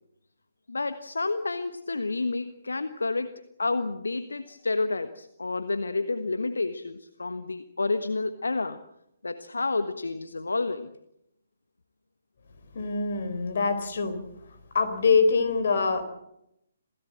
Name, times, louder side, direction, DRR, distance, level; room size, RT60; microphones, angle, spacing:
voice 1, 0.7-8.8 9.2-10.9, left 3 dB, 70° left, 10 dB, 1.3 m, -30 dB
voice 2, 12.7-14.3 14.7-16.0, left 4 dB, 50° left, 10 dB, 4.1 m, -24 dB
27.5 x 17.0 x 7.7 m, 0.81 s
figure-of-eight pair, 135°, 0 cm